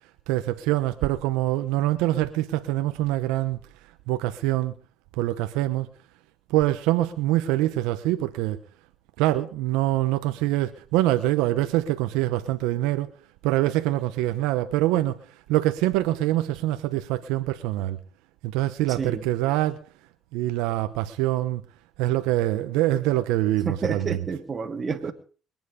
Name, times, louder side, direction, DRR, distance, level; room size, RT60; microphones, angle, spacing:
voice 1, 0.3-3.6 4.1-4.7 5.2-5.9 6.5-8.6 9.2-13.1 13.4-18.0 18.4-19.8 20.3-21.6 22.0-24.2, right 15 dB, 90° right, 0.9 m, -24 dB
voice 2, 18.9-19.2 23.7-25.1, right 5 dB, 40° right, 2.3 m, -30 dB
22.5 x 9.2 x 5.1 m
supercardioid pair, 80°, 0 cm